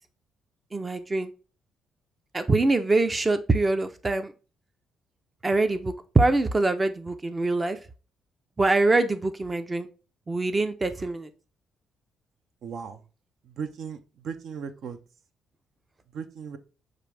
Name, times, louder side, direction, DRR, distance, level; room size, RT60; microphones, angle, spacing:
voice 1, 0.7-1.3 2.3-4.3 5.4-7.8 8.6-9.9 10.3-11.3, right 2 dB, 25° right, 0.5 m, -24 dB
voice 2, 12.6-13.0 13.4-15.0 16.1-16.6, right 6 dB, 65° right, 0.6 m, -37 dB
5.9 x 2.5 x 3.3 m
cardioid pair, 90°, 0 cm